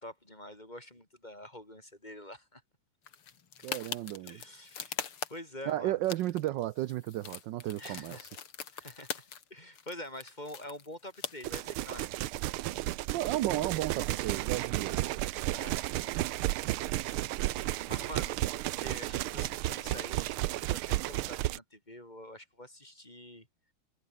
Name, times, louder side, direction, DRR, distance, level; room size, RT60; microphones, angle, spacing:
voice 1, 0.0-2.6 4.2-4.9 5.3-6.0 7.8-8.3 8.7-12.1 15.5-16.2 16.9-18.4 18.7-23.5, left 1 dB, 20° left, 6.0 m, -47 dB
sound 1, 3.1-5.7 6.0-9.5 9.7-11.6, left 7 dB, 85° left, 3.0 m, -42 dB
voice 2, 3.6-4.4 5.7-8.3 13.1-14.9, right 15 dB, 70° right, 1.2 m, -33 dB
sound 2, 11.4-21.6, right 16 dB, 90° right, 1.6 m, -33 dB
omnidirectional pair, 2.3 m